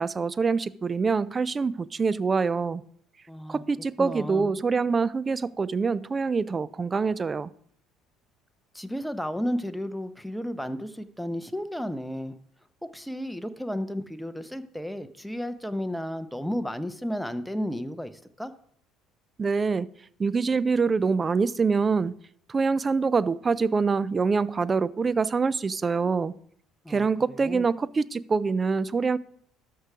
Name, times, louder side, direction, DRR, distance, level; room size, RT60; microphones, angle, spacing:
voice 1, 0.0-2.8 3.5-7.5 19.4-19.9 20.2-22.1 22.5-26.3 26.9-29.2, right 4 dB, 30° right, 0.4 m, -25 dB
voice 2, 3.3-3.6 4.0-4.5 8.7-12.4 12.8-18.5 26.8-27.7, equal, ahead, 0.8 m, -33 dB
13.0 x 4.7 x 5.0 m
hypercardioid pair, 60°, 0 cm